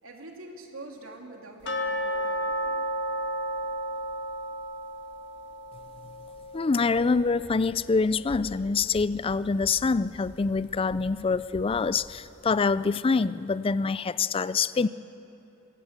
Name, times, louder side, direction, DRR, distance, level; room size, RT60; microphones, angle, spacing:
voice 1, 0.0-2.9, right 2 dB, 85° right, 1 dB, 2.9 m, -45 dB
sound 1, 1.7-8.5 8.8-8.9 9.4-9.5 10.0-10.1, equal, 60° left, 1.6 m, -33 dB
voice 2, 6.5-14.9, left 4 dB, 25° left, 17 dB, 0.4 m, -25 dB
sound 2, 6.8-12.1, equal, 45° right, 5.5 m, -48 dB
23.5 x 17.5 x 7.3 m, 2.9 s
head